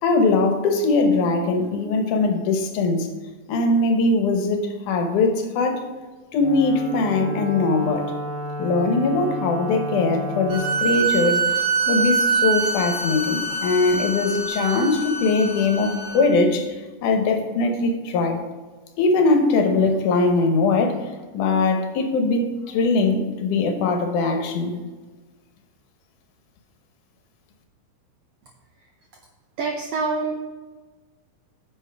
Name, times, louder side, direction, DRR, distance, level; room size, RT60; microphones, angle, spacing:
voice 1, 0.0-3.1 3.5-5.9 6.3-8.1 8.6-11.6 11.9-18.5 19.0-24.8, left 3 dB, 75° left, 4 dB, 2.4 m, -21 dB
Wind instrument woodwind instrument, 6.4-10.9, equal, 10° right, 2.3 m, -32 dB
sound 1, 10.5-16.2, right 4 dB, 50° right, 3.7 m, -24 dB
voice 2, 29.6-30.4, right 4 dB, 85° right, 2 dB, 1.4 m, -25 dB
9.9 x 6.3 x 3.4 m, 1.3 s
omnidirectional pair, 3.7 m